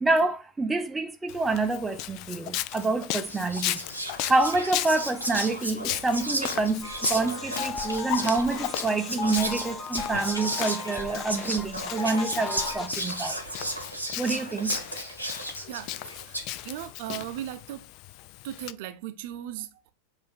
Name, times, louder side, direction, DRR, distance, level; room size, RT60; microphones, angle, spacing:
voice 1, 0.0-3.8 4.2-13.4 14.2-14.8, right 3 dB, 10° right, 0.6 m, -27 dB
Walk footsteps, 1.3-18.7, left 15 dB, 40° left, 0.3 m, -37 dB
Whispering, 2.7-2.9 3.3-16.6, right 1 dB, 90° left, 1.4 m, -34 dB
sound 1, 6.8-12.9, left 5 dB, 20° left, 0.8 m, -37 dB
voice 2, 16.6-17.9 18.4-19.9, right 12 dB, 50° right, 0.7 m, -37 dB
7.7 x 2.7 x 5.1 m
figure-of-eight pair, 90°, 0 cm